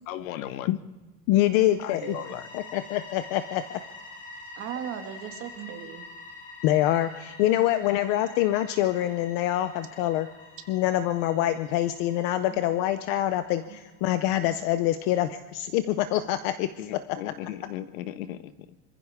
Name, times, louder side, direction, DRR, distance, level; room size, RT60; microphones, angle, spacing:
voice 1, 0.1-0.7 1.6-2.5 16.8-18.5, left 12 dB, 70° left, 12 dB, 1.2 m, -37 dB
voice 2, 1.3-2.2 2.5-3.6 6.6-10.3 10.7-17.0, left 13 dB, 40° left, 12 dB, 0.6 m, -25 dB
sound 1, 1.7-14.4, left 3 dB, 20° left, 2.3 m, -47 dB
voice 3, 2.0-2.3 4.6-6.0 7.4-7.5 12.5-12.6 13.7-13.8, right 9 dB, 30° right, 5 dB, 1.8 m, -37 dB
26.5 x 15.0 x 3.5 m, 1.2 s
supercardioid pair, 165°, 41 cm